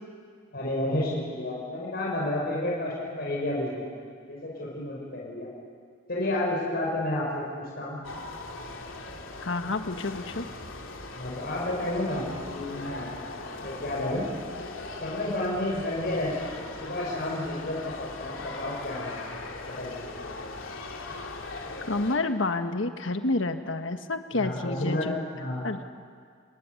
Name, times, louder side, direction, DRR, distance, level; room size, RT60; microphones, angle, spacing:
voice 1, 0.5-4.0 4.3-5.5 6.1-8.0 11.1-13.1 13.6-14.3 15.0-19.1 19.8-20.0 24.3-25.6, left 1 dB, 55° left, -4 dB, 6.2 m, -31 dB
sound 1, 8.0-22.2, left 2 dB, 90° left, 3.1 m, -39 dB
voice 2, 9.4-10.4 21.9-25.1 25.6-25.8, left 2 dB, 70° left, 7 dB, 1.6 m, -29 dB
28.0 x 20.5 x 9.7 m, 2.1 s
head